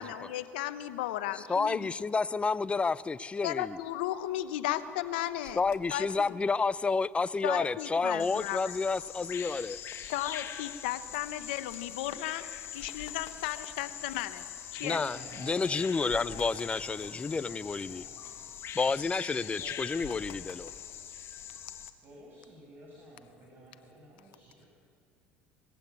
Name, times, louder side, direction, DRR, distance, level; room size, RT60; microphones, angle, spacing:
voice 1, 0.0-1.9 3.4-5.6 5.9-6.1 7.4-8.7 10.0-14.4 14.7-15.0, left 13 dB, 85° left, 1.0 m, -35 dB
voice 2, 1.5-3.8 5.6-9.8 14.8-18.0 18.7-20.7, left 4 dB, 20° left, 0.6 m, -30 dB
sound 1, 3.9-6.7 7.1-7.2 7.4-7.7 8.2-14.9 15.3-15.4 15.7-17.8 18.0-21.1, left 9 dB, 70° left, 1.7 m, -52 dB
Bird vocalization bird call bird song, 8.2-21.9, left 9 dB, 55° left, 1.7 m, -43 dB
voice 3, 14.8-18.4 19.4-20.3 22.0-24.7, right 1 dB, 40° right, 6.4 m, -52 dB
21.0 x 15.5 x 9.5 m
supercardioid pair, 85°, 5 cm